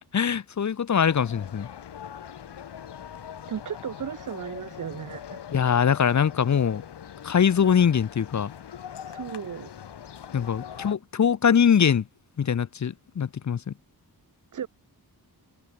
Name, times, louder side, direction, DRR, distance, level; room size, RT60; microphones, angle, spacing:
voice 1, 0.1-1.7 5.5-6.8 7.2-8.5 10.3-12.0 12.4-13.7, left 7 dB, 45° left, 0.8 m, -22 dB
sound 1, 1.1-11.0, left 9 dB, 85° left, 1.9 m, -42 dB
voice 2, 3.5-5.4 9.1-9.7 14.5-14.7, right 8 dB, 50° right, 0.7 m, -35 dB
wide cardioid pair, 140°, 40 cm